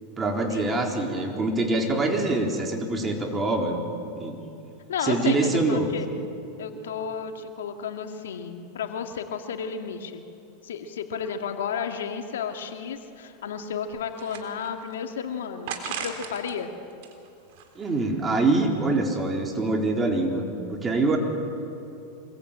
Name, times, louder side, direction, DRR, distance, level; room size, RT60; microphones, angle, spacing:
voice 1, 0.2-3.9 4.2-4.4 5.0-5.9 17.8-20.4 20.7-21.2, right 2 dB, 20° right, 2 dB, 3.8 m, -24 dB
voice 2, 4.9-6.1 6.6-10.2 10.6-16.7, left 6 dB, 90° left, 5 dB, 2.2 m, -32 dB
sound 1, 13.6-15.0 15.7-16.5 16.9-18.1, right 7 dB, 60° right, 3.8 m, -37 dB
26.0 x 22.5 x 8.9 m, 2.7 s
supercardioid pair, 130°, 0 cm